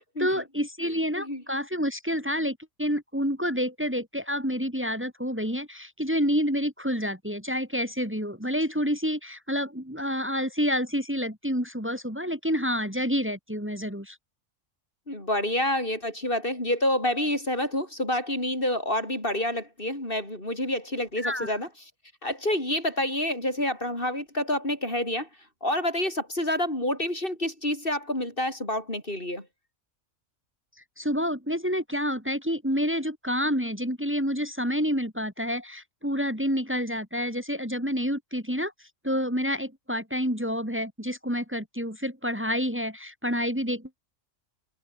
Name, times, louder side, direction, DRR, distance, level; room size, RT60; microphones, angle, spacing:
voice 1, 0.2-14.2 21.2-21.5 31.0-43.9, equal, 10° right, 4.9 m, -28 dB
voice 2, 15.1-21.7 22.2-25.3 25.6-29.5, left 1 dB, 45° left, 7.7 m, -28 dB
omnidirectional pair, 1.3 m